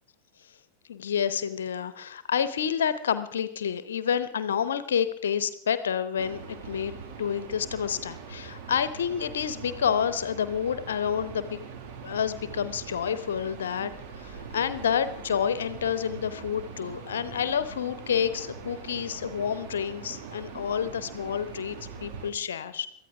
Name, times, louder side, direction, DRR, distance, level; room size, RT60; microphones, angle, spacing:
voice 1, 0.9-11.6 12.0-13.9 14.2-22.9, left 8 dB, 65° left, 13 dB, 0.8 m, -29 dB
sound 1, 6.2-22.3, right 6 dB, 45° right, 2.0 m, -42 dB
23.0 x 14.0 x 3.5 m, 0.69 s
figure-of-eight pair, 90°, 0 cm